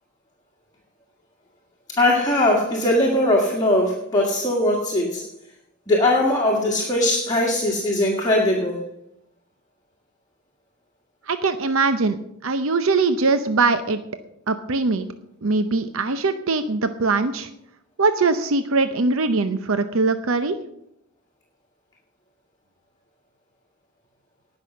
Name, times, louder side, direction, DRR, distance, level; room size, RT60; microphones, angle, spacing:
voice 1, 1.9-5.3 5.9-8.8, left 1 dB, 15° left, -2 dB, 1.9 m, -20 dB
voice 2, 11.3-14.0 14.5-15.1 15.4-17.5 18.0-20.6, right 3 dB, 60° right, 10 dB, 0.7 m, -21 dB
18.5 x 6.2 x 6.2 m, 0.77 s
head